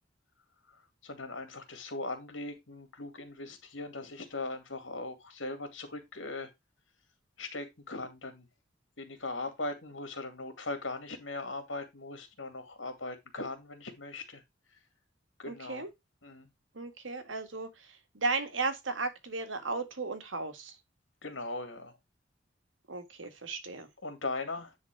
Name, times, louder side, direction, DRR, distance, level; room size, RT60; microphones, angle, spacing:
voice 1, 0.7-6.5 7.4-8.5 9.0-14.4 14.7-14.8 15.4-15.8 16.2-16.5 21.2-22.0 24.0-24.8, left 2 dB, 80° left, 2.3 m, -39 dB
voice 2, 15.5-15.9 16.7-20.8 22.9-23.9, right 3 dB, 90° right, 1.7 m, -35 dB
10.0 x 4.1 x 4.6 m
head